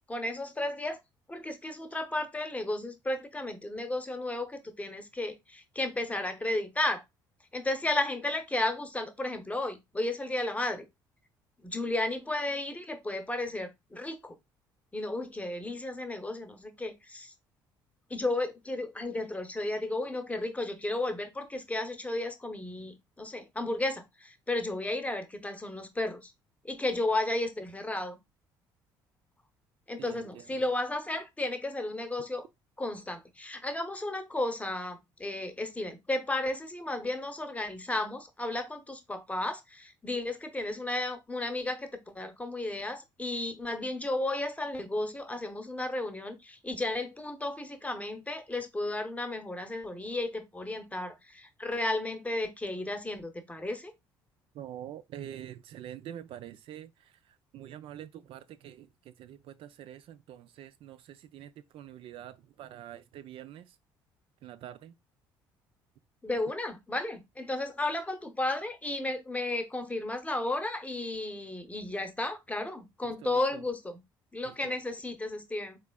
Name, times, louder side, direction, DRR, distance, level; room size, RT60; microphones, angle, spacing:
voice 1, 0.1-1.0 1.3-7.0 7.5-10.9 11.6-14.3 14.9-17.3 18.1-26.3 26.6-28.2 29.9-32.4 32.8-53.9 66.2-74.0 74.3-75.8, left 2 dB, 15° left, 0.8 m, -33 dB
voice 2, 30.0-30.6 54.5-63.8 64.4-65.0 73.0-73.6 74.4-74.7, right 11 dB, 60° right, 0.4 m, -46 dB
3.6 x 3.2 x 2.2 m
hypercardioid pair, 55°, 11 cm